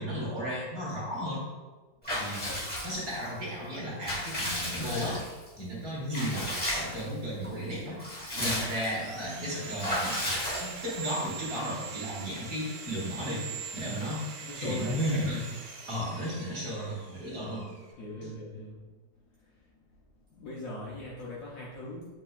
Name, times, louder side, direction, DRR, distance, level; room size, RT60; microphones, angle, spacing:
voice 1, 0.0-1.4 2.1-2.5 2.8-5.2 5.6-8.0 8.4-10.2 10.6-13.5 13.7-14.2 14.6-15.5 15.9-18.3, equal, 40° right, -5 dB, 1.6 m, -34 dB
Water / Bathtub (filling or washing) / Liquid, 2.0-3.3 3.8-5.5 6.1-7.1 7.4-7.5 7.9-9.0 9.8-11.1, equal, 5° left, 0.8 m, -33 dB
Sawing, 8.1-17.9, right 5 dB, 70° right, 1.1 m, -43 dB
voice 2, 8.3-8.7 13.8-14.0 14.4-15.0 18.0-18.8 20.3-22.1, left 1 dB, 75° left, -5 dB, 0.8 m, -40 dB
7.6 x 2.9 x 2.3 m, 1.3 s
omnidirectional pair, 2.3 m